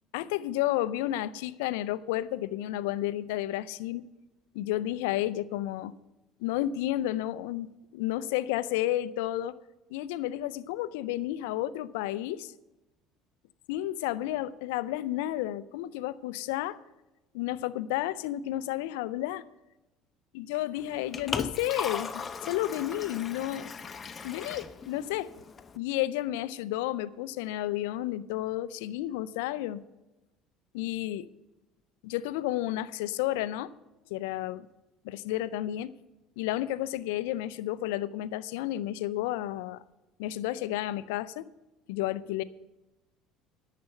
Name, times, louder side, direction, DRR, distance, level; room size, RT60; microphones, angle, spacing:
voice 1, 0.1-4.1 4.5-5.9 6.4-9.5 9.9-12.5 13.7-16.8 17.3-19.4 20.3-23.7 24.2-25.3 25.7-29.8 30.7-31.3 32.0-33.7 34.1-34.7 35.0-35.9 36.4-39.8 40.2-41.5 41.9-42.4, left 14 dB, 75° left, 17 dB, 0.4 m, -31 dB
Liquid, 20.8-25.8, left 5 dB, 35° left, 0.8 m, -38 dB
10.5 x 6.7 x 7.7 m, 1.0 s
hypercardioid pair, 70°, 0 cm